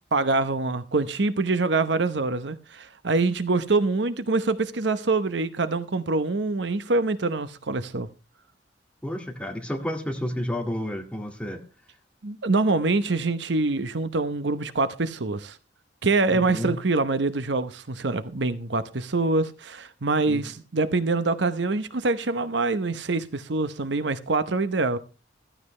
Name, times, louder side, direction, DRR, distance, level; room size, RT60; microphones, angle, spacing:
voice 1, 0.1-8.1 12.2-15.6 16.0-25.0, right 3 dB, 65° right, 0.9 m, -25 dB
voice 2, 9.0-11.6 16.3-16.7 20.3-20.4, left 1 dB, 5° left, 2.0 m, -31 dB
15.0 x 14.5 x 3.3 m
head